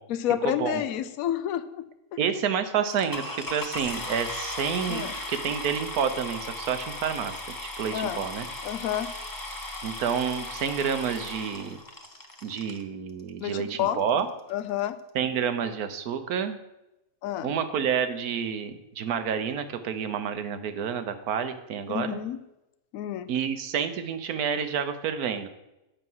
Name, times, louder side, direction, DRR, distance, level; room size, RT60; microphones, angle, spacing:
voice 1, 0.1-2.2 4.9-5.1 7.9-8.2 8.6-9.1 13.4-14.0 14.5-15.0 17.2-17.5 21.9-22.4 22.9-23.3, left 11 dB, 75° left, 13 dB, 1.0 m, -30 dB
voice 2, 2.2-7.3 7.8-8.5 9.8-11.8 12.4-14.3 15.1-16.6 17.4-22.2 23.3-25.5, right 7 dB, 90° right, 9 dB, 1.3 m, -29 dB
sound 1, 2.9-12.8 13.6-13.7 14.2-14.3 14.5-14.8, left 1 dB, 20° left, 0.7 m, -37 dB
8.6 x 6.0 x 5.5 m, 0.93 s
omnidirectional pair, 1.5 m